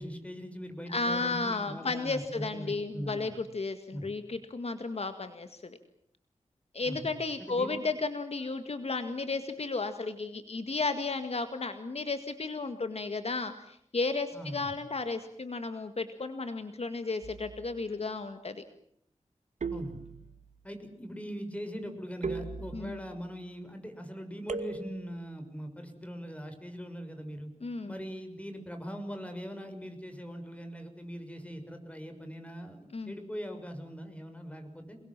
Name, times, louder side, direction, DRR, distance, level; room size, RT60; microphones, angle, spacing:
voice 1, 0.0-3.2 3.9-4.1 6.8-7.1 7.4-7.8 14.3-14.7 19.7-20.0 20.6-27.5 27.9-35.0, equal, 10° left, 5 dB, 6.6 m, -41 dB
voice 2, 0.9-5.8 6.7-18.6 22.7-23.0 27.6-27.9 32.9-33.1, left 3 dB, 55° left, 8 dB, 2.0 m, -33 dB
sound 1, 17.2-17.8 19.6-20.5 22.2-23.2 24.5-25.2, right 4 dB, 75° right, 2.2 m, -38 dB
28.5 x 21.5 x 7.6 m, 0.70 s
wide cardioid pair, 85°, 12 cm